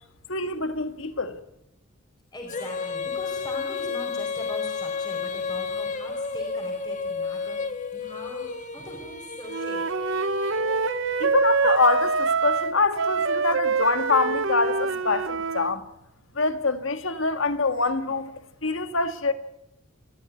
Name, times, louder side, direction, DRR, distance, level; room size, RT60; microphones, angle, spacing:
voice 1, 0.3-1.4 11.2-15.8 16.4-18.3 18.6-19.3, left 3 dB, 65° left, 1.7 m, -25 dB
voice 2, 2.3-10.0, left 1 dB, 20° left, 4.7 m, -41 dB
Female singing, 2.5-11.6, left 5 dB, 35° left, 1.6 m, -32 dB
Wind instrument woodwind instrument, 9.5-15.7, right 4 dB, 60° right, 0.8 m, -25 dB
29.0 x 14.0 x 9.6 m
head